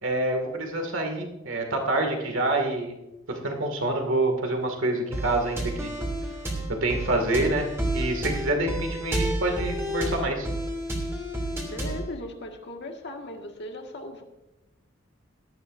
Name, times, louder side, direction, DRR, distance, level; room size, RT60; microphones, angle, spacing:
voice 1, 0.0-2.9 3.3-5.9 6.8-7.7 7.9-10.5, right 2 dB, 65° right, 3 dB, 2.2 m, -27 dB
sound 1, 5.1-12.1, right 1 dB, 15° right, 2.7 m, -30 dB
voice 2, 11.6-14.2, left 1 dB, 55° left, 2 dB, 1.8 m, -38 dB
17.5 x 13.0 x 2.6 m, 0.95 s
head